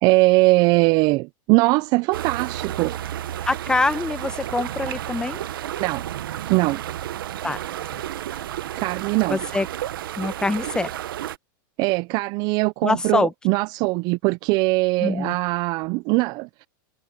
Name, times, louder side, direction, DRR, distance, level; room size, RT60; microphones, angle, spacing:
voice 1, 0.0-3.0 5.8-6.0 6.5-6.8 8.8-9.4 11.8-16.7, right 24 dB, 35° right, 0.3 m, -21 dB
sound 1, 2.1-11.4, right 12 dB, 90° right, 1.0 m, -32 dB
Bicycle, 3.0-6.3, right 8 dB, 20° right, 4.9 m, -55 dB
voice 2, 3.4-5.4 7.4-7.6 7.9-8.0 9.3-9.7 10.2-10.9 12.8-13.3 15.0-15.4, left 3 dB, 5° left, 1.0 m, -24 dB
supercardioid pair, 150°, 11 cm